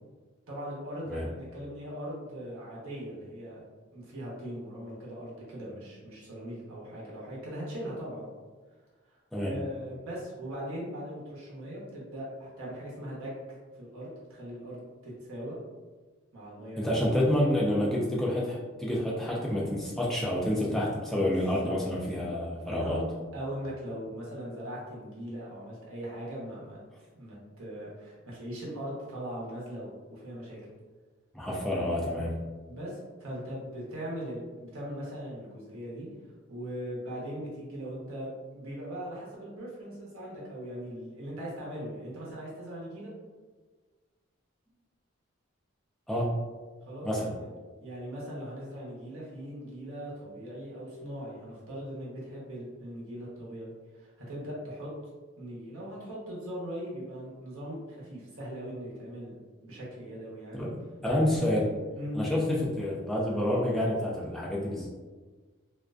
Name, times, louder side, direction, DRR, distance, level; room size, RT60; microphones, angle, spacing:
voice 1, 0.5-3.6 3.9-8.3 9.1-9.2 9.5-13.3 13.8-15.6 16.3-17.0 21.6-21.8 22.5-23.0 23.3-26.8 27.1-30.6 32.1-32.3 32.7-36.1 36.5-43.1 46.9-47.1 47.4-47.5 47.8-54.9 55.4-59.3 59.6-60.7 62.0-62.2, equal, 80° right, -5 dB, 0.8 m, -40 dB
voice 2, 16.8-23.0 31.3-32.4 46.1-46.3 47.0-47.3 60.6-60.7 61.0-61.7 62.1-64.9, left 1 dB, ahead, -5 dB, 0.3 m, -28 dB
2.4 x 2.2 x 2.3 m, 1.4 s
head